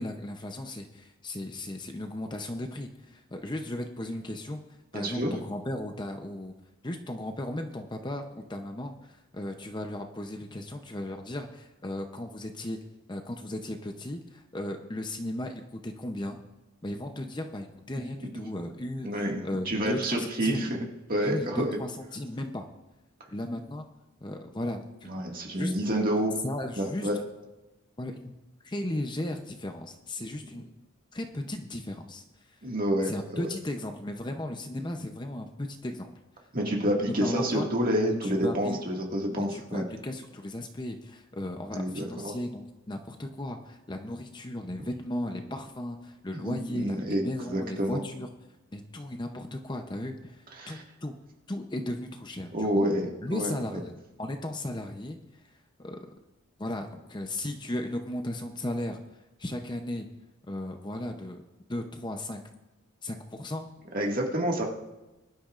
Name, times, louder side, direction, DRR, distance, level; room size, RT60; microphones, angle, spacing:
voice 1, 0.0-4.6 4.9-6.5 6.8-12.8 13.1-16.4 16.8-20.8 21.2-22.7 23.3-23.9 24.2-25.7 26.4-27.1 28.0-28.3 28.6-30.7 31.1-32.6 33.0-36.1 36.9-37.7 38.2-38.8 39.3-48.3 48.7-51.2 51.5-52.9 53.2-55.2 55.8-56.1 56.6-59.0 59.4-60.1 60.5-61.4 61.7-62.4 63.0-63.7, left 1 dB, 20° left, 4 dB, 0.7 m, -36 dB
voice 2, 4.9-5.3 18.4-18.5 19.0-20.7 21.1-21.8 25.1-26.4 26.8-27.2 32.6-33.4 36.5-39.8 41.7-42.4 46.4-48.0 50.6-50.8 52.5-53.5 63.9-64.7, equal, 40° right, -1 dB, 2.0 m, -28 dB
21.5 x 11.5 x 2.5 m, 1.1 s
head